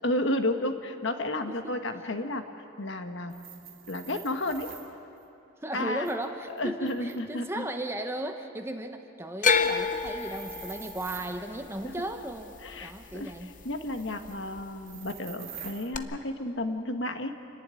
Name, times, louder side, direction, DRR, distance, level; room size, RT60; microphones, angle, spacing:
voice 1, 0.0-2.4 2.8-3.3 3.9-4.7 5.7-6.1 6.6-7.7 11.8-11.9 12.6-17.3, left 1 dB, 60° left, 6 dB, 1.3 m, -32 dB
voice 2, 1.5-1.8 5.6-12.5 12.8-13.5, right 1 dB, 10° right, 5 dB, 0.8 m, -36 dB
sound 1, 3.3-4.9 6.0-7.4 9.9-11.4 13.8-14.4 14.8-15.9, right 9 dB, 45° right, 2.6 m, -46 dB
sound 2, 9.4-13.6 13.9-14.6 15.9-16.0, left 5 dB, 40° left, 0.7 m, -29 dB
27.5 x 11.5 x 9.6 m, 2.7 s
head